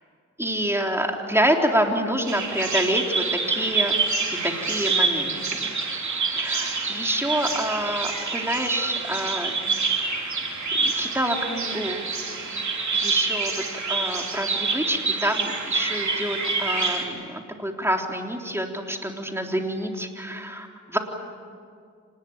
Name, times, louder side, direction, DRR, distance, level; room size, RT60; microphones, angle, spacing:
voice 1, 0.4-4.0 4.4-5.7 6.4-9.5 10.8-12.1 12.5-12.6 12.9-21.0, equal, 10° right, 2 dB, 3.8 m, -27 dB
Bird vocalization bird call bird song, 2.3-17.0, right 4 dB, 70° right, 3.5 m, -27 dB
26.0 x 19.5 x 9.0 m, 2.2 s
cardioid pair, 50°, 30 cm